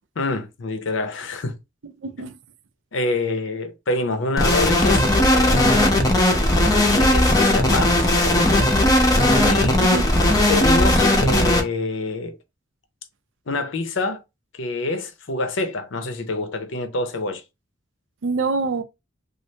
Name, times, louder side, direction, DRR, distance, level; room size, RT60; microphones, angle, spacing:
voice 1, 0.2-1.6 2.9-5.7 6.7-8.5 9.5-9.8 10.5-12.4 13.5-14.2 14.5-17.4, left 2 dB, 70° left, 0.7 m, -26 dB
voice 2, 2.0-2.4 9.2-9.6 9.8-10.0 18.2-18.8, right 4 dB, 65° right, 0.4 m, -26 dB
sound 1, 4.4-11.6, left 1 dB, 20° left, 0.6 m, -17 dB
3.2 x 2.5 x 2.8 m
head